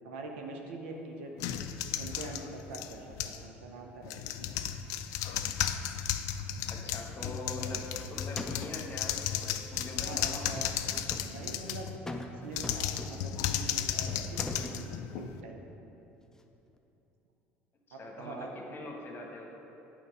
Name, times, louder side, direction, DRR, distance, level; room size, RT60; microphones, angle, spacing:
voice 1, 0.0-1.6 1.9-4.5 10.0-10.7 11.3-12.0 12.4-15.6 17.9-18.5, right 3 dB, 85° right, 2 dB, 0.7 m, -44 dB
sound 1, 1.4-3.5 4.0-12.0 12.5-15.4, left 10 dB, 65° left, 0.3 m, -34 dB
voice 2, 6.7-10.5 17.9-19.5, left 2 dB, 35° left, 0 dB, 1.2 m, -43 dB
sound 2, 7.9-8.1 8.4-8.9 10.4-11.3 12.1-12.4 12.6-13.4 14.1-14.8, left 1 dB, 10° left, 0.5 m, -41 dB
8.5 x 3.8 x 4.7 m, 3.0 s
hypercardioid pair, 70°, 6 cm